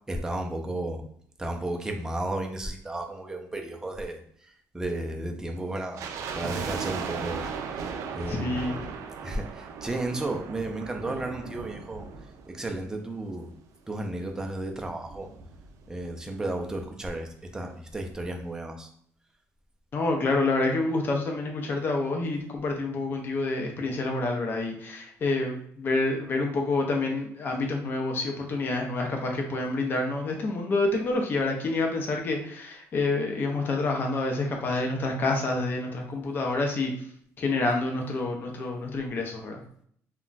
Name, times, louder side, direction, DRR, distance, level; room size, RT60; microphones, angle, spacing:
voice 1, 0.1-1.0 1.4-6.1 6.3-8.9 9.2-12.1 12.5-13.5 13.9-15.3 15.9-18.9, right 2 dB, 10° right, 2 dB, 0.4 m, -33 dB
sound 1, 6.0-13.2 13.5-13.6 14.3-16.1 16.3-16.4 16.7-17.0 17.4-17.5, right 5 dB, 70° right, 0.4 m, -37 dB
voice 2, 8.3-8.8 19.9-36.9 37.4-39.6, left 2 dB, 40° left, 2 dB, 0.5 m, -28 dB
2.3 x 2.2 x 3.8 m, 0.63 s
cardioid pair, 150°, 6 cm